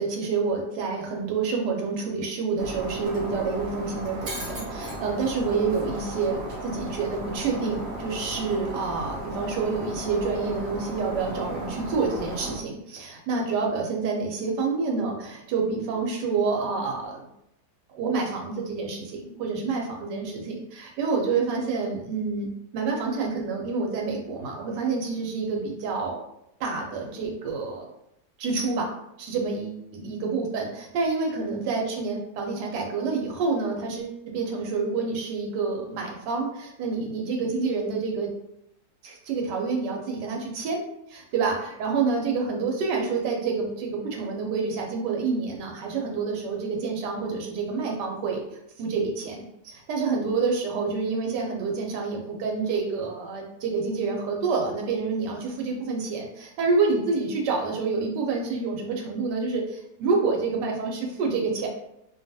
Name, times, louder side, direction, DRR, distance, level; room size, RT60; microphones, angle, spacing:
voice 1, 0.0-17.3 17.9-26.2 26.6-27.9 28.4-28.9 29.3-38.3 39.0-40.8 41.1-48.4 48.8-61.7, right 4 dB, 85° right, 1 dB, 1.2 m, -28 dB
Shatter, 2.6-12.5, right 1 dB, 65° right, 0.6 m, -35 dB
2.7 x 2.3 x 2.6 m, 0.81 s
omnidirectional pair, 1.8 m